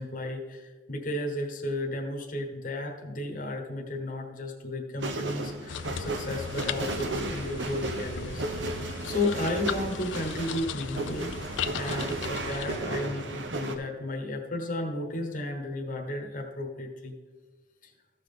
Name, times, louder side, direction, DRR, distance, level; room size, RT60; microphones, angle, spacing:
voice 1, 0.0-11.3 11.7-17.1 17.8-17.9, left 1 dB, 45° left, 2 dB, 1.1 m, -33 dB
sound 1, 5.0-13.7, right 2 dB, 70° right, 0.9 m, -35 dB
sound 2, 5.7-12.8, left 7 dB, 80° left, 0.5 m, -37 dB
15.0 x 5.6 x 3.8 m, 1.4 s
head